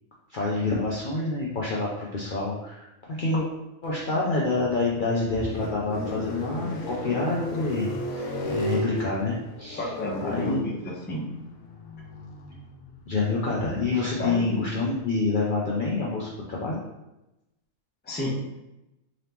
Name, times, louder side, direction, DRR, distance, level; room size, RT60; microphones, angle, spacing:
voice 1, 0.3-3.5 3.8-9.9 10.2-10.6 13.1-16.8, left 3 dB, 55° left, -4 dB, 0.6 m, -27 dB
sound 1, 4.5-14.8, left 1 dB, 85° left, 1.1 m, -36 dB
voice 2, 9.8-11.3 14.2-14.6 18.0-18.3, equal, 10° left, -3 dB, 0.6 m, -31 dB
3.8 x 2.9 x 3.4 m, 0.95 s
omnidirectional pair, 1.4 m